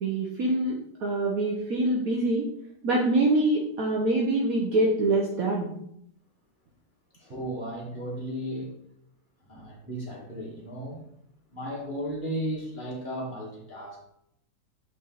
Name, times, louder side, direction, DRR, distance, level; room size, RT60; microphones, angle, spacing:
voice 1, 0.0-2.5 2.8-5.7, right 2 dB, 60° right, -2 dB, 1.3 m, -25 dB
voice 2, 7.2-8.7 9.5-11.0 11.5-14.0, equal, 30° left, -3 dB, 2.0 m, -35 dB
8.3 x 4.2 x 3.9 m, 0.75 s
omnidirectional pair, 1.8 m